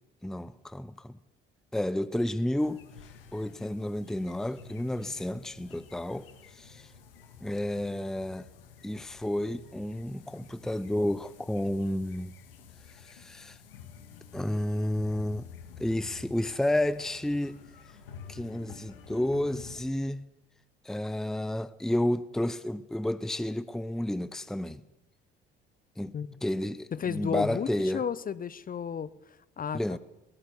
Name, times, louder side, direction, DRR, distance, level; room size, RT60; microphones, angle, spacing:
voice 1, 0.2-1.2 1.7-2.8 3.3-6.3 6.5-6.9 7.4-8.5 8.8-12.3 12.9-13.6 14.3-15.5 15.8-17.6 18.3-20.2 20.8-24.8 26.0-26.1 26.4-28.0 29.7-30.0, left 1 dB, ahead, 0.8 m, -31 dB
sound 1, 2.6-19.8, left 6 dB, 75° left, 1.9 m, -51 dB
voice 2, 26.9-30.0, left 7 dB, 30° left, 0.9 m, -33 dB
21.5 x 18.5 x 7.1 m
figure-of-eight pair, 50°, 29 cm